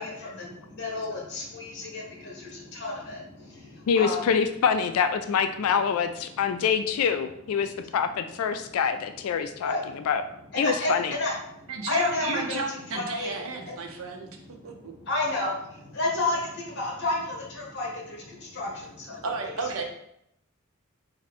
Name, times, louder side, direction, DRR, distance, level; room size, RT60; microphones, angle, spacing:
voice 1, 0.0-4.2 6.3-6.6 8.7-8.8 9.5-10.1 10.5-13.3 13.6-19.2, left 2 dB, 55° left, -2 dB, 1.3 m, -32 dB
voice 2, 3.9-10.2 10.6-11.1, left 6 dB, 75° left, 8 dB, 0.3 m, -25 dB
voice 3, 11.7-14.3 14.6-14.9 19.2-19.8, right 4 dB, 70° right, 3 dB, 0.7 m, -33 dB
4.2 x 2.6 x 4.1 m, 0.76 s
head